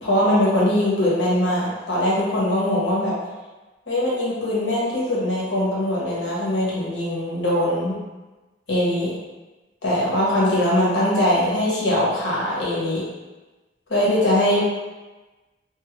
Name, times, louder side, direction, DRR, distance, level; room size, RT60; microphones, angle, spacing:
voice 1, 0.0-3.1 3.9-8.0 8.7-9.1 9.8-13.1 13.9-14.6, left 1 dB, 90° left, -7 dB, 1.0 m, -21 dB
2.6 x 2.4 x 3.1 m, 1.2 s
head